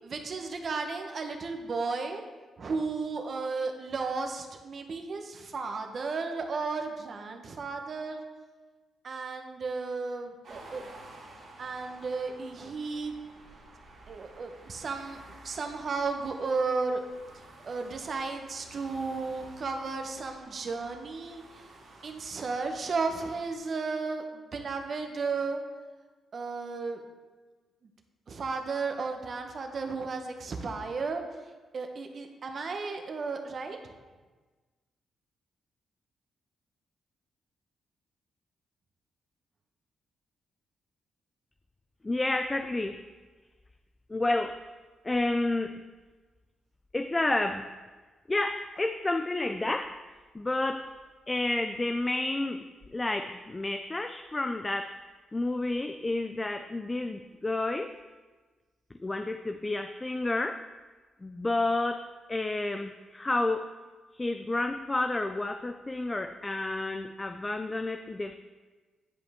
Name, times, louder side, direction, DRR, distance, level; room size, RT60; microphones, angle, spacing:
voice 1, 0.0-2.2 2.6-8.2 9.0-10.8 11.6-13.2 14.1-17.0 17.6-21.6 22.0-25.6 26.3-27.0 28.3-31.2 31.7-33.9, right 4 dB, 55° right, 4 dB, 1.0 m, -34 dB
sound 1, 10.4-23.6, right 2 dB, 70° right, 2.0 m, -52 dB
voice 2, 42.0-43.0 44.1-44.6 45.0-45.8 46.9-47.7 48.3-50.0 50.3-50.9 51.3-55.0 55.3-58.0 59.0-60.6 61.2-63.7 64.1-68.4, left 2 dB, 25° left, 8 dB, 0.4 m, -30 dB
10.0 x 4.9 x 3.6 m, 1.3 s
supercardioid pair, 60°, 0 cm